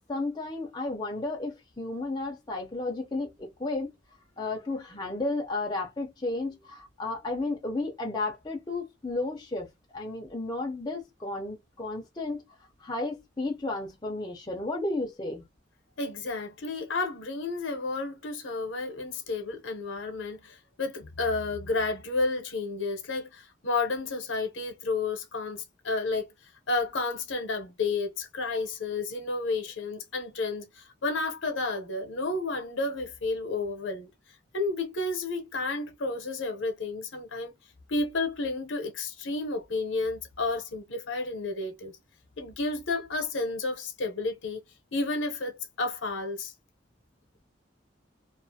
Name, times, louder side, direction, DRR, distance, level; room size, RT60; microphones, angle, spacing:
voice 1, 0.1-3.9 4.4-9.7 9.9-12.4 12.8-15.4, left 2 dB, 20° left, 0.5 m, -33 dB
voice 2, 16.0-26.3 26.7-34.1 34.5-37.6 37.9-41.9 42.4-44.6 44.9-46.5, left 3 dB, 70° left, 0.7 m, -31 dB
2.5 x 2.4 x 2.7 m
head